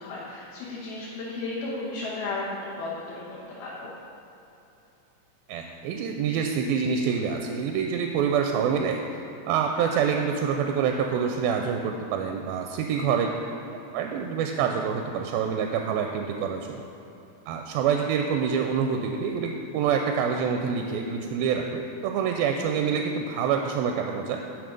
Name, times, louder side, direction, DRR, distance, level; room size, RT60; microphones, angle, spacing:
voice 1, 0.0-3.9 12.9-13.1, left 3 dB, 90° left, -6 dB, 3.1 m, -34 dB
voice 2, 5.5-9.0 9.5-13.3 13.9-16.8 17.5-24.4, right 7 dB, 85° right, 3 dB, 2.4 m, -26 dB
9.4 x 6.5 x 5.2 m, 2.9 s
omnidirectional pair, 4.2 m